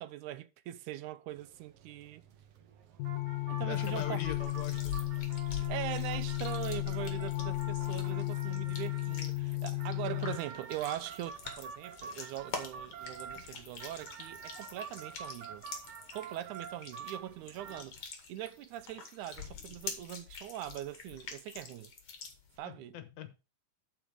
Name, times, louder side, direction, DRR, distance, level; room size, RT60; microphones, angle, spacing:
voice 1, 0.0-2.2 3.5-4.5 5.7-15.6 16.1-18.0 18.3-21.9 22.6-23.0, right 13 dB, 85° right, 2.1 m, -41 dB
sound 1, 1.3-17.8, right 6 dB, 65° right, 1.8 m, -48 dB
sound 2, 3.0-10.4, left 19 dB, 90° left, 2.1 m, -34 dB
voice 2, 3.6-4.9 22.6-23.4, left 10 dB, 70° left, 2.3 m, -42 dB
sound 3, 3.7-22.6, left 5 dB, 55° left, 2.6 m, -46 dB
11.0 x 4.9 x 5.0 m
omnidirectional pair, 3.4 m